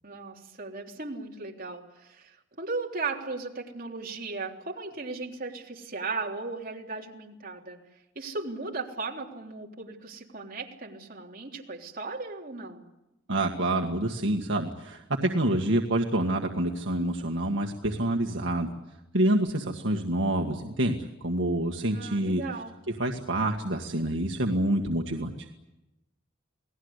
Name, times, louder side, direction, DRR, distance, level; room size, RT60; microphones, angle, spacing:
voice 1, 0.0-7.8 8.2-12.9 21.9-22.7, right 3 dB, 45° right, 0 dB, 3.5 m, -37 dB
voice 2, 13.3-18.7 19.1-22.4 23.0-25.5, right 1 dB, 70° right, 2 dB, 1.8 m, -27 dB
28.5 x 19.0 x 8.2 m, 0.94 s
head